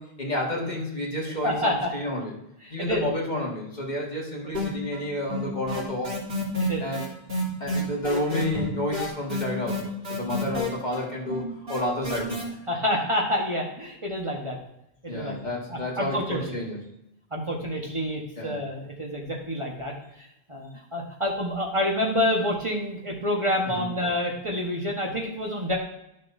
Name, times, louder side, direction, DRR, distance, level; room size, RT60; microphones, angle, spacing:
voice 1, 0.0-2.3 2.7-6.2 6.8-7.1 7.6-11.4 11.7-12.4 15.1-16.8 18.4-18.6 23.7-23.9, left 1 dB, 45° left, -3 dB, 2.2 m, -30 dB
voice 2, 1.4-1.9 2.8-3.0 6.7-6.8 12.7-14.6 15.0-16.4 17.3-19.9 20.5-25.8, left 1 dB, 30° right, -1 dB, 1.5 m, -28 dB
sound 1, 4.5-5.0 5.3-12.4, left 2 dB, 65° right, 3.4 m, -29 dB
12.5 x 6.5 x 2.8 m, 0.83 s
omnidirectional pair, 1.1 m